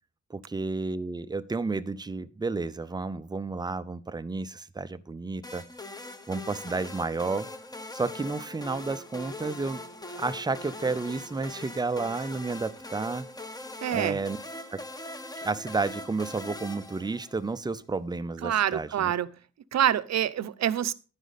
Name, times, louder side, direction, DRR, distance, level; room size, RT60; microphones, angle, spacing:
voice 1, 0.3-5.6 6.3-7.5 7.9-9.8 10.1-13.3 13.9-14.4 14.7-14.8 15.4-19.1, right 3 dB, 15° right, 0.5 m, -31 dB
sound 1, 5.4-17.6, left 2 dB, 10° left, 0.9 m, -41 dB
voice 2, 13.8-14.2 18.4-19.3 19.7-20.9, right 10 dB, 60° right, 0.7 m, -26 dB
11.5 x 10.0 x 4.1 m
wide cardioid pair, 150°, 30 cm